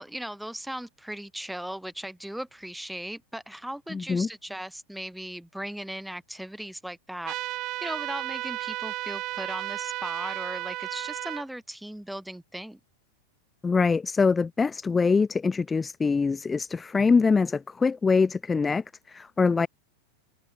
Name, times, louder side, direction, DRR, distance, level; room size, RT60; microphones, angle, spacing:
voice 1, 0.0-7.3 7.8-12.8, right 1 dB, ahead, 5.7 m, -38 dB
voice 2, 3.9-4.3 13.6-19.7, left 4 dB, 15° left, 0.7 m, -24 dB
sound 1, 7.2-11.4, right 18 dB, 40° right, 7.3 m, -33 dB
figure-of-eight pair, 90°, 0 cm